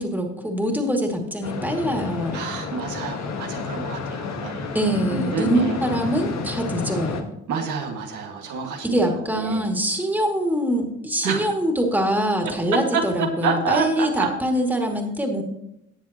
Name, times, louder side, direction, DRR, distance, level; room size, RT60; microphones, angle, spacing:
voice 1, 0.0-2.4 4.7-7.3 8.8-15.4, equal, 5° right, 1 dB, 2.5 m, -24 dB
sound 1, 1.4-7.2, left 4 dB, 60° left, 1.5 m, -31 dB
voice 2, 2.3-4.8 5.1-5.8 7.5-9.0 9.3-9.7 11.2-11.5 12.4-12.5 12.9-14.3, right 5 dB, 80° right, 1 dB, 1.9 m, -28 dB
18.5 x 7.4 x 3.0 m, 0.81 s
cardioid pair, 90°, 30 cm